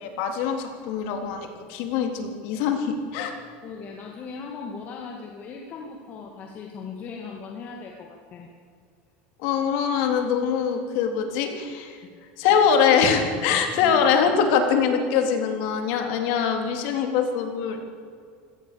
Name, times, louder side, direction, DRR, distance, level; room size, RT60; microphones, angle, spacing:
voice 1, 0.0-3.3 9.4-12.0 12.4-17.8, left 6 dB, 60° left, 5 dB, 3.6 m, -23 dB
voice 2, 3.6-8.5 12.0-12.2 13.5-13.9, left 5 dB, 35° left, 1 dB, 2.3 m, -39 dB
25.5 x 17.5 x 7.0 m, 2.2 s
cardioid pair, 165°, 5 cm